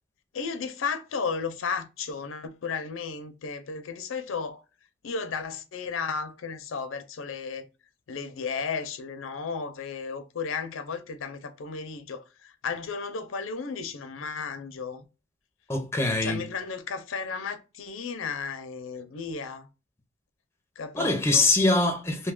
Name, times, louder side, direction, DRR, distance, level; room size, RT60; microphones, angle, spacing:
voice 1, 0.3-4.6 5.0-7.7 8.1-15.1 16.2-19.7 20.8-21.5, left 5 dB, 90° left, 0.5 m, -34 dB
voice 2, 15.7-16.4 20.9-22.3, left 2 dB, 15° left, 0.5 m, -23 dB
2.7 x 2.2 x 3.5 m
head